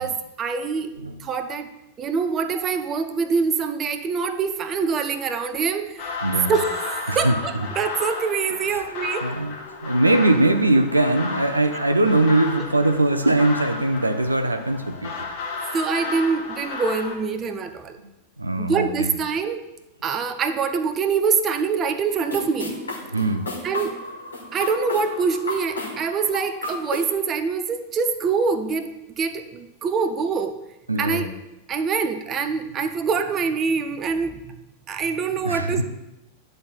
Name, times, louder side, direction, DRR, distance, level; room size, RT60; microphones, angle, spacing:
voice 1, 0.0-0.9 1.2-1.7 2.0-6.1 6.5-9.3 15.7-18.0 18.6-19.6 20.0-22.8 23.6-24.0 24.5-30.6 31.0-31.3 31.7-34.4 34.9-35.8, right 5 dB, 25° right, 9 dB, 0.6 m, -25 dB
sound 1, 6.0-17.1, left 4 dB, 45° left, 1.7 m, -33 dB
voice 2, 7.1-7.4 8.6-8.8 9.2-9.6 9.8-15.1 18.4-19.1 23.1-23.5 30.9-31.3 35.4-35.8, right 2 dB, 85° right, 7 dB, 0.5 m, -21 dB
sound 2, 22.1-27.1, left 2 dB, 75° left, 1.9 m, -33 dB
10.0 x 3.9 x 4.2 m, 0.96 s
figure-of-eight pair, 90°, 0 cm